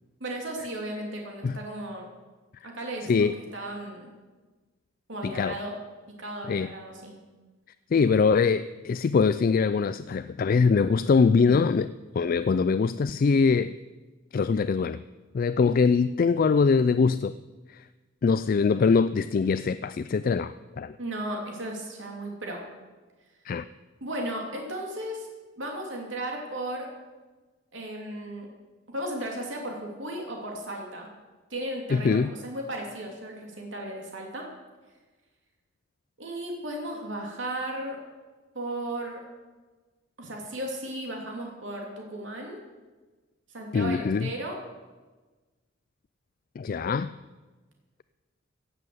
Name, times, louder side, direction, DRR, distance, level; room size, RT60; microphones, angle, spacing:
voice 1, 0.2-2.1 2.6-4.1 5.1-5.8 6.2-7.2 11.5-11.6 21.0-22.6 24.0-25.3 25.6-26.9 27.7-28.5 28.9-31.1 31.5-34.5 36.2-38.0 38.5-39.2 40.2-42.6 43.5-44.6, right 1 dB, 75° right, 0 dB, 2.9 m, -35 dB
voice 2, 5.2-5.5 6.5-6.7 7.9-11.9 12.2-13.7 14.3-15.0 15.3-17.3 18.2-21.0 23.5-23.6 31.9-32.3 43.7-44.3 46.6-47.1, left 5 dB, 45° left, 13 dB, 0.3 m, -23 dB
16.5 x 7.7 x 7.9 m, 1.3 s
head